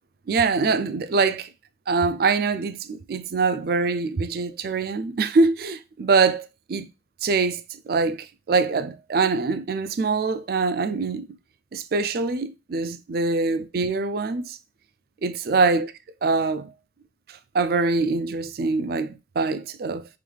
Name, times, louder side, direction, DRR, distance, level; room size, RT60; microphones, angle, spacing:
voice 1, 0.3-1.5 1.9-6.9 7.2-11.3 11.7-14.6 15.2-15.9 16.2-16.7 17.5-20.1, right 4 dB, 55° right, 0.4 m, -24 dB
3.9 x 3.1 x 3.2 m
head